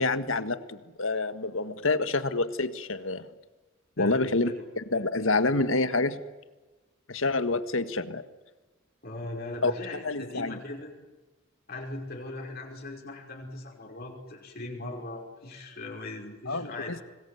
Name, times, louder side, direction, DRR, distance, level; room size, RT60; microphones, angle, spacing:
voice 1, 0.0-3.3 4.0-6.2 7.1-8.2 9.6-9.7 10.0-10.6 16.5-17.0, left 3 dB, 80° left, 11 dB, 1.7 m, -27 dB
voice 2, 4.0-4.7 9.0-10.9 11.7-17.0, left 2 dB, 50° left, -1 dB, 5.5 m, -39 dB
26.0 x 20.5 x 9.4 m, 1.2 s
head